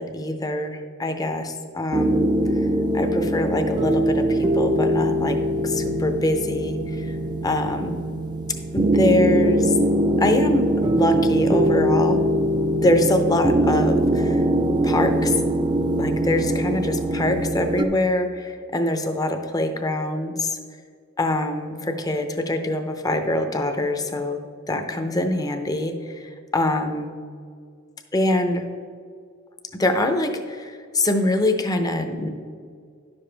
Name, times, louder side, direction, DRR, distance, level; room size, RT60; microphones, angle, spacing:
voice 1, 0.0-2.2 2.5-2.7 2.9-7.2 7.4-8.0 8.7-9.8 10.2-12.2 12.8-14.4 14.8-15.4 16.0-20.6 21.2-24.4 24.7-27.1 28.1-28.6 29.8-32.3, left 1 dB, 20° left, 6 dB, 0.6 m, -24 dB
sound 1, 1.9-17.8, right 1 dB, 20° right, 0.3 m, -22 dB
10.5 x 7.0 x 3.4 m, 2.2 s
head